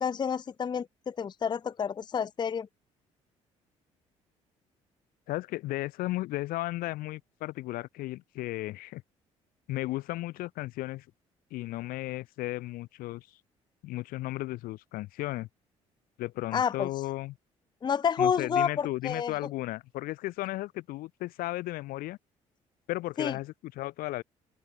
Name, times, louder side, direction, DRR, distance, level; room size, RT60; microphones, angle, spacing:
voice 1, 0.0-2.7 16.5-16.9 17.8-19.3 23.2-23.4, left 7 dB, 30° left, 0.5 m, -29 dB
voice 2, 5.3-9.0 9.7-11.0 11.5-13.3 13.8-15.5 16.2-17.4 18.2-22.2 22.9-24.2, left 18 dB, 70° left, 0.7 m, -35 dB
open air
hypercardioid pair, 55°, 16 cm